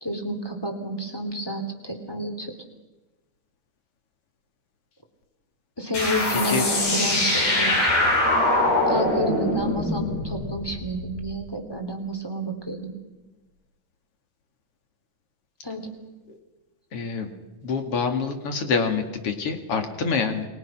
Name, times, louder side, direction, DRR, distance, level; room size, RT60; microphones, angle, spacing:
voice 1, 0.0-2.5 5.8-7.9 8.9-12.9 15.6-15.8, equal, 5° left, 4 dB, 2.5 m, -30 dB
sound 1, 5.9-11.2, left 1 dB, 70° left, 8.5 m, -23 dB
voice 2, 6.3-6.7 16.9-17.3 17.6-20.5, left 5 dB, 45° left, 6 dB, 2.6 m, -26 dB
29.5 x 21.5 x 6.0 m, 1.1 s
omnidirectional pair, 4.5 m